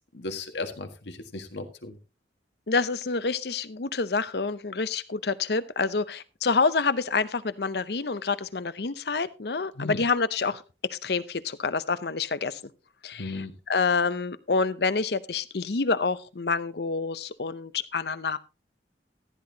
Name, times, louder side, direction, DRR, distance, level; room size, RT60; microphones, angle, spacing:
voice 1, 0.1-2.0 9.8-10.0 13.2-13.5, left 3 dB, 85° left, 7 dB, 1.6 m, -35 dB
voice 2, 2.7-10.6 10.9-12.6 13.0-18.4, left 4 dB, 65° left, 15 dB, 0.7 m, -27 dB
14.5 x 10.5 x 2.8 m, 0.31 s
head